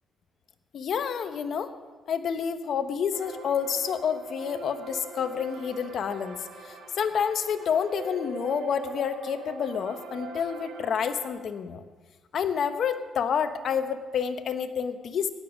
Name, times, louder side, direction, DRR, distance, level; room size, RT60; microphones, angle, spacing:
voice 1, 0.7-1.7 2.1-6.4 6.6-11.8 12.3-15.3, left 7 dB, 60° left, 9 dB, 0.9 m, -29 dB
sound 1, 3.1-11.3, right 3 dB, 80° right, 3.7 m, -42 dB
18.0 x 8.9 x 6.2 m, 1.4 s
cardioid pair, 90°, 0 cm